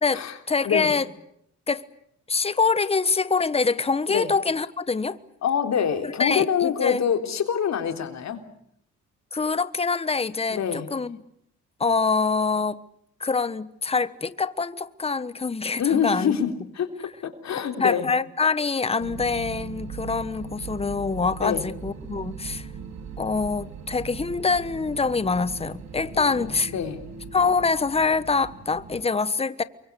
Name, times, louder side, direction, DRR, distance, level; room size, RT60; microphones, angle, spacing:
voice 1, 0.0-1.0 1.7-1.8 2.3-5.2 6.0-7.0 9.3-11.2 11.8-12.8 13.2-16.3 17.6-22.7 23.2-26.7 27.3-29.6, left 4 dB, 20° left, 1.1 m, -25 dB
voice 2, 5.4-8.4 10.5-10.9 15.8-18.1 21.4-21.6 26.2-27.0, left 8 dB, 65° left, 3.5 m, -26 dB
sound 1, 19.0-29.0, right 6 dB, 65° right, 3.4 m, -39 dB
29.0 x 24.0 x 7.0 m
cardioid pair, 90°, 30 cm